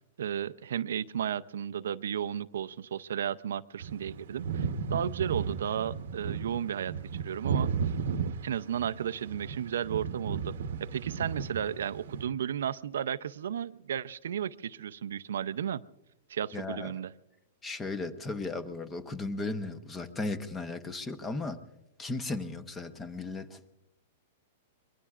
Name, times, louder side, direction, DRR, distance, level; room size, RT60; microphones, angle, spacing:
voice 1, 0.2-7.9 8.4-10.5 10.8-15.8 16.3-17.1, right 9 dB, 90° right, 14 dB, 0.5 m, -34 dB
sound 1, 3.8-12.2, right 6 dB, 70° right, 0.9 m, -34 dB
voice 2, 16.5-16.9 17.6-21.6 22.0-23.7, left 3 dB, 10° left, 11 dB, 0.8 m, -36 dB
25.5 x 22.5 x 2.4 m, 0.93 s
supercardioid pair, 170°, 0 cm